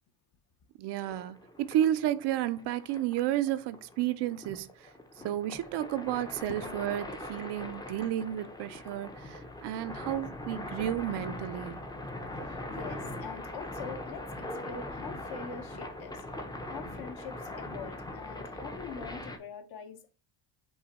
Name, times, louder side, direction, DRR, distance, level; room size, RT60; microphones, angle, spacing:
voice 1, 0.8-4.9 5.2-11.8, right 12 dB, 65° right, 0.5 m, -32 dB
sound 1, 1.0-19.4, left 1 dB, 10° left, 0.5 m, -41 dB
voice 2, 6.5-6.8 12.4-16.2 16.7-20.1, left 6 dB, 55° left, 0.8 m, -44 dB
5.5 x 2.2 x 4.1 m
cardioid pair, 110°, 45 cm